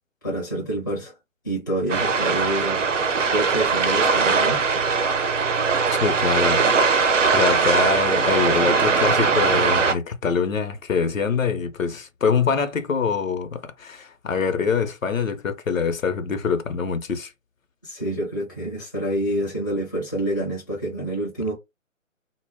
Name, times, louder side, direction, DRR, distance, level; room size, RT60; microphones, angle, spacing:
voice 1, 0.2-1.1 1.4-2.8 3.3-4.6 17.8-21.6, right 1 dB, 15° left, 0.5 m, -27 dB
sound 1, 1.9-9.9, right 4 dB, 65° right, 0.6 m, -20 dB
voice 2, 5.9-6.6 6.9-7.0 7.3-17.3, left 5 dB, 75° left, 0.7 m, -24 dB
2.1 x 2.0 x 3.3 m
figure-of-eight pair, 145°, 40 cm